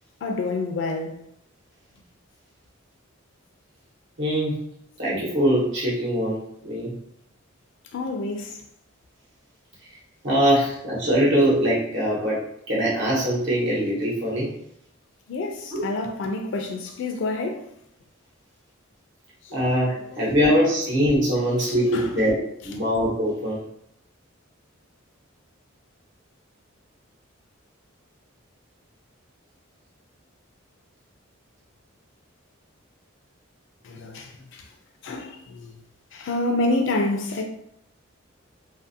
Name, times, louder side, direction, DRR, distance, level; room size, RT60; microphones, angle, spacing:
voice 1, 0.2-1.2 7.9-8.6 15.3-17.7 19.4-19.6 20.1-20.3 21.3-22.1 33.8-34.7 35.0-35.8 36.1-37.4, left 2 dB, 65° left, 0.4 m, -28 dB
voice 2, 4.2-4.6 5.0-6.9 10.2-12.4 12.7-14.5 15.7-15.8 19.5-22.4 22.6-23.6, equal, 65° right, 1.0 m, -22 dB
2.7 x 2.5 x 2.6 m
head